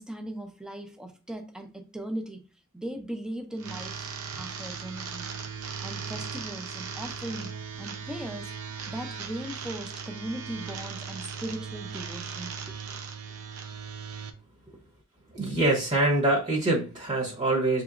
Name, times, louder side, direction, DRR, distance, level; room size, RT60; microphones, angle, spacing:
voice 1, 0.0-2.4 2.7-4.0 4.4-5.3 5.8-8.5 8.9-12.8 14.7-14.8 15.3-15.5, right 1 dB, 5° right, 0.5 m, -38 dB
sound 1, 3.6-14.3, right 6 dB, 90° right, 0.7 m, -38 dB
voice 2, 15.3-17.8, right 2 dB, 35° right, 1.0 m, -25 dB
5.9 x 2.9 x 2.5 m
head